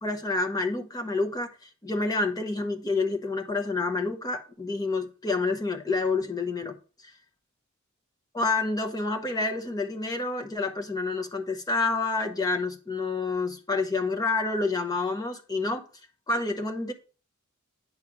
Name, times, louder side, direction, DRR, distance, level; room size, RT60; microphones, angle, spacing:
voice 1, 0.0-6.8 8.3-15.8 16.3-16.9, left 3 dB, 20° left, 1.0 m, -28 dB
9.6 x 3.3 x 6.7 m
head